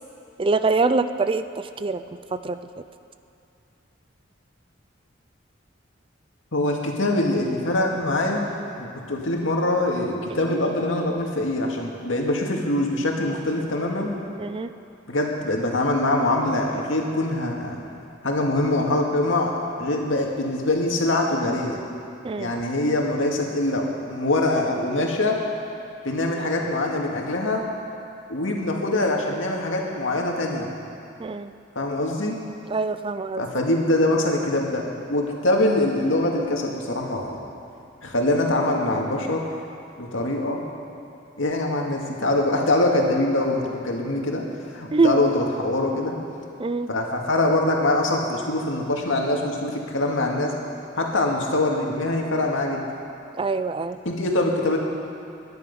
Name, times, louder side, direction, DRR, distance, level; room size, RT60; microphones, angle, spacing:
voice 1, 0.4-2.6 14.4-14.7 22.2-22.5 31.2-31.5 32.7-33.5 44.9-45.2 46.6-46.9 53.3-54.0, right 3 dB, 25° right, 11 dB, 0.4 m, -24 dB
voice 2, 6.5-14.1 15.1-17.8 18.2-21.8 22.4-25.4 26.0-27.7 28.3-30.7 31.8-32.4 33.3-37.4 38.0-39.4 40.0-40.6 41.4-46.2 46.9-50.5 51.0-52.9 54.1-54.8, left 2 dB, 85° left, 0 dB, 2.1 m, -23 dB
21.5 x 10.5 x 5.5 m, 2.6 s
head